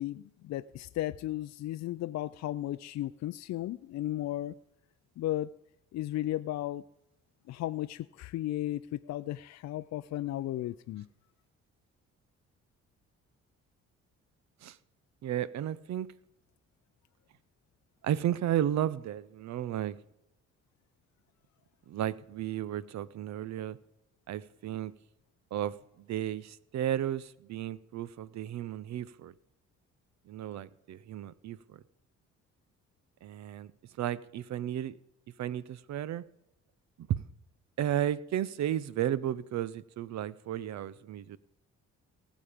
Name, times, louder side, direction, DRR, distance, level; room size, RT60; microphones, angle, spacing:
voice 1, 0.0-4.5 5.2-5.5 5.9-6.8 7.5-11.1, left 14 dB, 60° left, 0.4 m, -35 dB
voice 2, 15.2-16.1 18.0-20.0 21.9-23.8 24.3-24.9 25.5-29.3 30.3-31.8 33.2-33.7 34.0-35.0 35.4-36.2 37.0-37.2 37.8-41.4, right 11 dB, 65° right, 0.7 m, -33 dB
18.5 x 7.4 x 5.1 m
cardioid pair, 90°, 30 cm